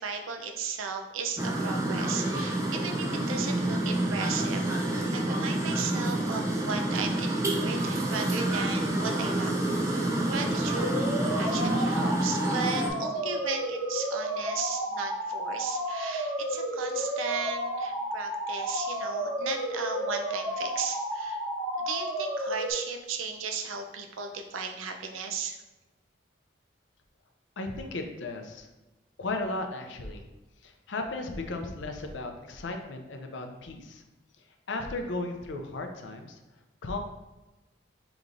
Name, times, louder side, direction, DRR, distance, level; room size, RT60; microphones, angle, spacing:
voice 1, 0.0-4.6 5.1-9.5 9.8-11.0 11.4-21.4 21.8-25.6, right 5 dB, 90° right, 5 dB, 0.5 m, -36 dB
sound 1, 1.4-12.9, right 1 dB, 15° right, 0.4 m, -28 dB
sound 2, 10.7-22.7, equal, 5° left, 0.8 m, -32 dB
voice 2, 27.6-28.7 29.2-30.2 30.6-34.0 34.7-36.4 36.8-37.0, left 2 dB, 65° left, 4 dB, 0.5 m, -35 dB
5.1 x 2.9 x 2.5 m, 1.1 s
head